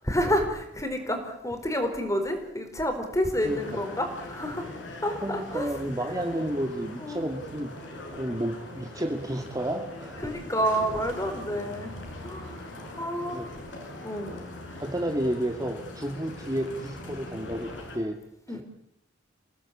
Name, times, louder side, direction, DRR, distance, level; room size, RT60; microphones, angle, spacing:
voice 1, 0.0-4.7 5.0-5.7 7.0-7.3 10.2-11.9 12.2-12.6 13.0-13.4 14.0-14.3 18.5-18.6, equal, 15° left, 6 dB, 4.6 m, -29 dB
sound 1, 3.4-18.0, left 1 dB, 75° left, 6.6 m, -42 dB
voice 2, 5.2-7.7 8.1-10.2 13.3-13.5 14.8-18.2 18.5-18.6, right 1 dB, 20° right, 3 dB, 2.0 m, -31 dB
28.0 x 18.0 x 8.6 m, 0.75 s
head